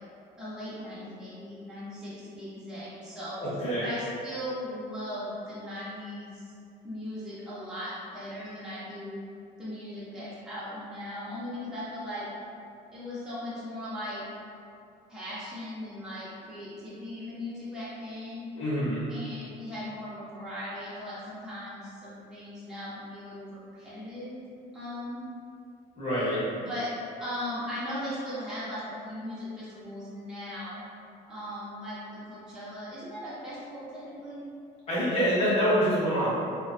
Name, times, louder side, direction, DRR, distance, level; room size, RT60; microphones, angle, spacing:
voice 1, 0.4-3.4 3.8-6.4 6.8-9.2 9.6-12.3 12.9-14.2 15.1-18.4 19.1-24.4 24.7-25.3 26.6-26.9 27.2-30.9 31.3-34.4, left 1 dB, 5° right, -11 dB, 0.7 m, -38 dB
voice 2, 3.4-3.9 18.6-19.0 26.0-26.4 34.9-36.3, equal, 35° left, -10 dB, 0.9 m, -26 dB
2.3 x 2.1 x 2.5 m, 2.5 s
cardioid pair, 110°, 17 cm